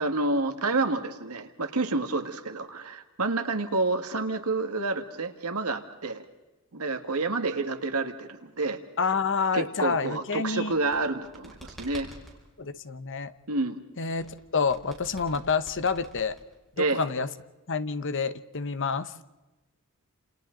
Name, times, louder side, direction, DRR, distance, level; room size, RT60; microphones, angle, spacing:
voice 1, 0.0-6.3 6.7-8.8 9.5-12.1 13.5-13.8 16.8-17.1, right 3 dB, 85° right, 7 dB, 1.8 m, -29 dB
voice 2, 9.0-10.7 12.6-13.3 14.0-16.3 16.8-17.3 17.7-19.1, left 5 dB, 60° left, 12 dB, 1.0 m, -28 dB
sound 1, 10.7-12.4 14.2-16.8, right 1 dB, ahead, 6.0 m, -47 dB
29.5 x 28.0 x 3.9 m, 1.1 s
head